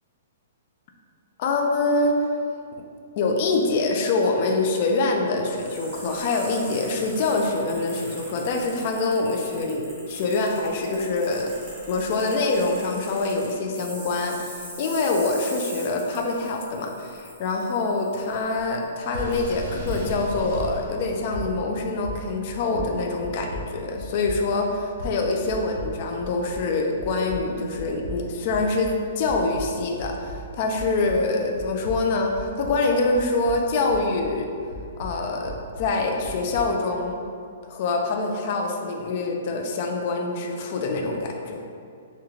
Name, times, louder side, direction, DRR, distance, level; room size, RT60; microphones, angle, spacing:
voice 1, 1.4-2.2 3.2-34.5 35.0-37.2 37.6-41.6, left 3 dB, 40° left, 2 dB, 0.3 m, -25 dB
sound 1, 5.4-18.8 19.3-19.4 19.9-20.1, right 1 dB, 15° right, 0.7 m, -42 dB
sound 2, 18.5-18.9 19.1-26.7 27.0-31.3 31.6-34.4 34.7-36.8, right 1 dB, 85° right, 0.9 m, -37 dB
Water / Sink (filling or washing), 19.1-20.9, right 1 dB, 45° right, 0.9 m, -35 dB
3.6 x 2.1 x 3.0 m, 2.4 s
hypercardioid pair, 165°, 0 cm